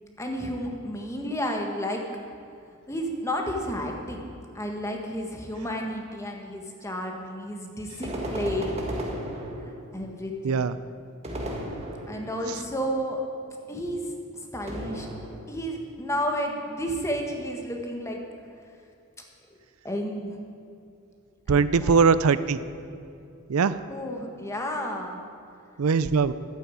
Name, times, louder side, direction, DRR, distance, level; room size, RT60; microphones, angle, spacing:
voice 1, 0.2-2.0 2.9-4.3 4.5-8.8 9.5-9.6 9.9-10.7 12.1-13.3 13.7-14.0 14.3-15.1 15.5-18.2 19.8-20.4 21.5-22.0 23.9-25.2, equal, 15° left, 1 dB, 1.5 m, -31 dB
sound 1, 8.0-10.0 11.2-12.4 14.7-15.7, equal, 30° right, 1.9 m, -34 dB
voice 2, 10.4-10.8 21.5-22.6 23.5-23.8 25.8-26.3, right 5 dB, 80° right, 14 dB, 0.5 m, -21 dB
12.0 x 9.0 x 8.5 m, 2.5 s
head